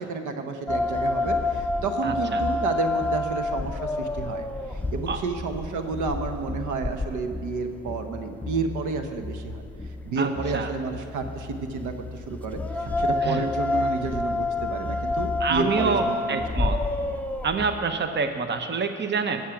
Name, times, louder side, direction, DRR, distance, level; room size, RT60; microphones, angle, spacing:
voice 1, 0.0-4.5 4.9-9.6 10.1-16.7, right 4 dB, 80° right, 7 dB, 1.0 m, -31 dB
sound 1, 0.7-17.8, left 2 dB, 5° left, 0.5 m, -29 dB
voice 2, 2.0-2.4 5.1-5.2 10.2-10.7 13.2-13.4 15.4-16.8 17.4-19.4, right 5 dB, 35° right, 7 dB, 0.9 m, -27 dB
12.5 x 7.4 x 5.9 m, 2.4 s
cardioid pair, 90°, 30 cm